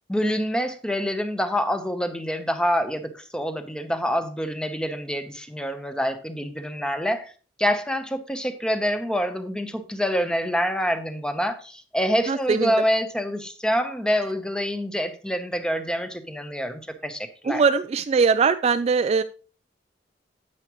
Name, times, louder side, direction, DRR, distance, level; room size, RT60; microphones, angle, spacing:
voice 1, 0.1-7.3 7.6-17.6, equal, 5° left, 9 dB, 0.8 m, -26 dB
voice 2, 12.3-12.7 17.4-19.2, right 5 dB, 35° right, 11 dB, 0.3 m, -21 dB
9.6 x 8.3 x 3.0 m, 0.36 s
head